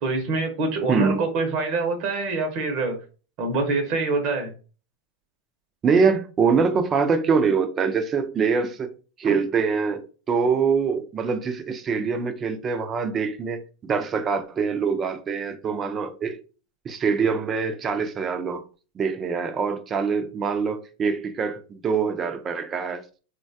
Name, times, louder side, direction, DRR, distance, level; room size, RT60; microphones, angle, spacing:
voice 1, 0.0-3.0 3.4-4.5 9.2-9.3, right 3 dB, 55° right, 0.7 m, -25 dB
voice 2, 0.9-1.2 5.8-8.9 9.2-16.4 16.8-18.6 19.0-23.0, right 5 dB, 30° right, 0.4 m, -24 dB
3.1 x 2.2 x 2.6 m
hypercardioid pair, 115°, 0 cm